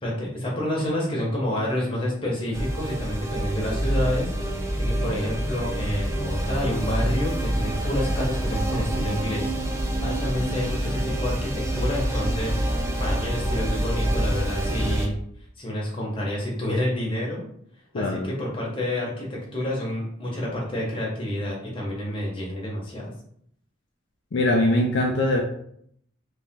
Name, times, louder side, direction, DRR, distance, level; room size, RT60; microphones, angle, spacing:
voice 1, 0.0-12.6 13.0-15.2 15.6-17.4 17.9-23.1, left 1 dB, 25° left, -4 dB, 1.2 m, -29 dB
sound 1, 2.5-15.1, right 1 dB, 15° right, 0.4 m, -27 dB
voice 2, 17.9-18.3 24.3-25.4, left 1 dB, 60° left, 0 dB, 0.5 m, -22 dB
3.2 x 2.9 x 3.6 m, 0.66 s
head